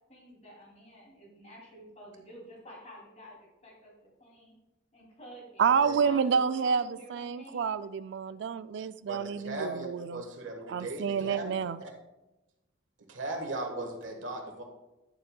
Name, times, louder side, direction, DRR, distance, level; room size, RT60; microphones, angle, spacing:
voice 1, 0.1-4.5 4.9-7.7, equal, 35° left, 2.8 m, -50 dB
voice 2, 5.6-10.2 10.7-11.8, right 6 dB, 65° right, 0.3 m, -29 dB
voice 3, 9.1-11.9 13.1-14.6, right 2 dB, 85° right, 1.5 m, -38 dB
11.0 x 7.1 x 2.3 m
head